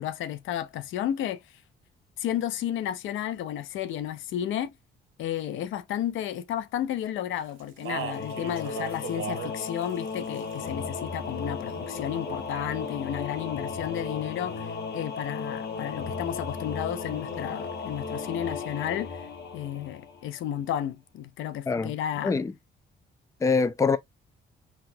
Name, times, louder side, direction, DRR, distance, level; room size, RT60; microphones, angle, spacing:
voice 1, 0.0-1.4 2.2-4.7 5.2-19.3 19.5-22.3, left 11 dB, 80° left, 0.5 m, -32 dB
Speech, 7.6-9.5 9.8-10.7 12.1-12.8, right 10 dB, 85° right, 0.7 m, -38 dB
Singing / Musical instrument, 7.9-20.4, left 4 dB, 55° left, 1.1 m, -35 dB
voice 2, 23.4-24.0, left 4 dB, 15° left, 0.4 m, -24 dB
3.9 x 2.4 x 2.6 m
cardioid pair, 90°, 20 cm